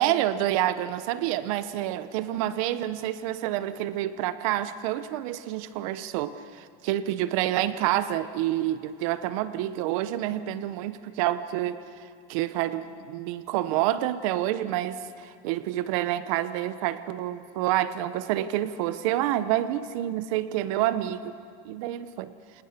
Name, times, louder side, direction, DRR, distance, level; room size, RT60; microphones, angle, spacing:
voice 1, 0.0-11.8 12.3-21.3 21.6-22.3, right 13 dB, 60° right, 13 dB, 1.0 m, -28 dB
25.5 x 19.5 x 6.8 m, 2.3 s
cardioid pair, 175°, 20 cm